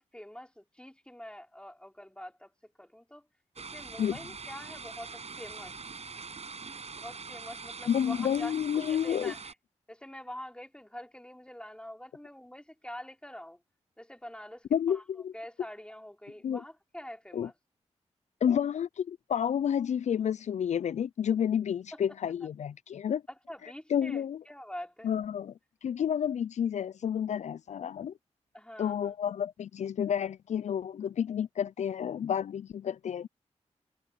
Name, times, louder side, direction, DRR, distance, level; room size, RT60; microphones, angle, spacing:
voice 1, 0.0-3.3 3.6-5.8 6.9-8.5 8.9-9.5 9.9-13.6 14.0-15.0 15.3-17.5 21.9-22.0 23.5-25.1 28.5-29.1, left 1 dB, 10° left, 3.4 m, -45 dB
sound 1, 3.6-9.5, right 4 dB, 60° right, 6.6 m, -43 dB
voice 2, 7.9-9.3 14.7-15.3 16.4-16.6 17.3-17.5 18.4-23.2 23.9-24.4 25.0-25.5 25.8-28.1 28.8-33.3, left 8 dB, 75° left, 0.4 m, -30 dB
cardioid pair, 45°, 12 cm